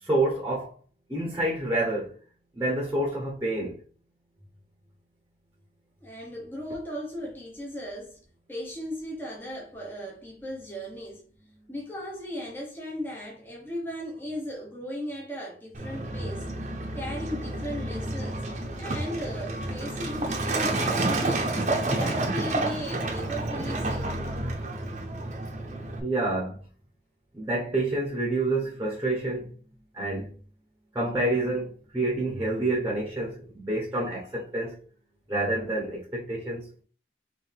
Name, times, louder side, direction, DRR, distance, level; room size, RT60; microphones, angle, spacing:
voice 1, 0.0-0.8 1.1-2.2 2.6-3.8 26.0-26.6 27.3-29.5 29.9-30.3 30.9-34.8 35.3-36.7, right 2 dB, 10° right, 1.1 m, -28 dB
voice 2, 6.0-8.2 8.5-11.2 11.7-16.4 16.9-18.5 18.8-21.5 21.9-24.1, equal, 10° left, 1.1 m, -37 dB
Truck, 15.7-26.0, right 2 dB, 40° right, 0.8 m, -30 dB
4.6 x 3.3 x 3.4 m
head